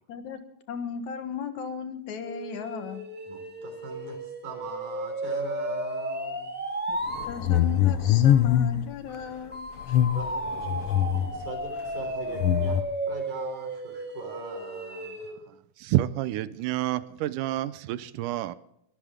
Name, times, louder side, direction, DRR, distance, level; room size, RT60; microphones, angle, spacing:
voice 1, 0.1-0.4 0.7-3.0 6.9-7.0 7.3-10.0, left 6 dB, 70° left, 2.7 m, -36 dB
sound 1, 2.1-7.3 9.5-15.4, right 1 dB, 5° right, 1.5 m, -34 dB
voice 2, 3.2-6.5 10.1-11.0 11.3-15.2, right 4 dB, 70° right, 5.0 m, -42 dB
sound 2, 7.1-8.9 9.8-11.5 12.4-12.8, left 10 dB, 85° left, 1.2 m, -23 dB
voice 3, 15.8-18.6, right 14 dB, 85° right, 2.3 m, -28 dB
22.5 x 13.5 x 3.7 m
omnidirectional pair, 3.6 m